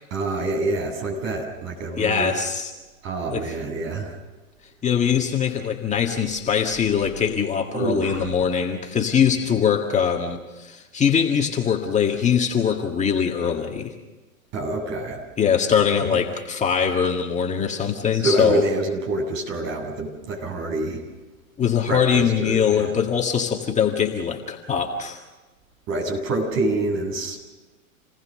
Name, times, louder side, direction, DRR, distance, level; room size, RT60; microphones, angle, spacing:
voice 1, 0.1-2.3 3.0-4.1 7.7-8.3 14.5-15.2 18.2-21.0 21.9-22.9 25.9-27.4, right 2 dB, 40° right, 2 dB, 7.9 m, -26 dB
voice 2, 2.0-2.7 3.3-3.5 4.8-13.9 15.4-18.6 21.6-25.2, left 7 dB, 15° left, 1 dB, 1.9 m, -22 dB
28.5 x 19.5 x 6.7 m, 1.2 s
hypercardioid pair, 120°, 42 cm